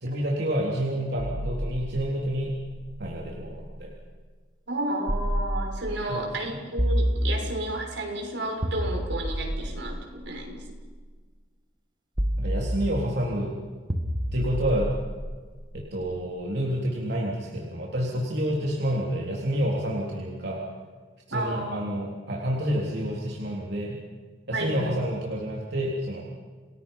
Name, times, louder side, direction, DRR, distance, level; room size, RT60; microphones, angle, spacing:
voice 1, 0.0-2.5 3.0-3.9 6.1-6.2 12.4-13.5 14.3-14.9 15.7-20.6 21.3-24.0 24.5-26.2, equal, 65° right, -3 dB, 3.6 m, -29 dB
sound 1, 1.2-4.0 5.1-6.1 6.8-7.9 8.6-10.9 12.2-13.3 13.9-16.1, equal, 25° right, 1.8 m, -30 dB
voice 2, 4.7-10.6 21.3-21.8 24.5-25.0, right 1 dB, 85° right, 2 dB, 6.1 m, -32 dB
29.5 x 20.5 x 5.6 m, 1.5 s
head